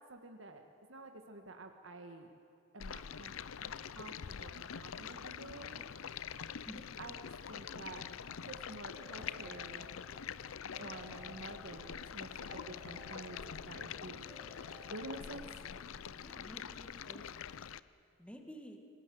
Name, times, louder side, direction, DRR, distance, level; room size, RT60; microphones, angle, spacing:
voice 1, 0.1-0.6 0.9-2.3 2.7-3.3 3.9-5.8 7.0-7.1 7.5-8.1 8.4-9.9 10.8-14.3 14.9-15.5, right 2 dB, 70° right, 5 dB, 1.6 m, -49 dB
Stream, 2.8-17.8, left 7 dB, 85° left, 0.6 m, -45 dB
Keyboard (musical) / Ringtone, 9.0-10.3 10.7-12.1 12.5-13.8 14.3-15.6, left 2 dB, 20° right, 3.8 m, -58 dB
voice 2, 15.1-15.4 16.1-17.5 18.2-18.8, equal, 5° left, 4 dB, 1.9 m, -52 dB
26.5 x 19.0 x 7.9 m, 2.6 s
head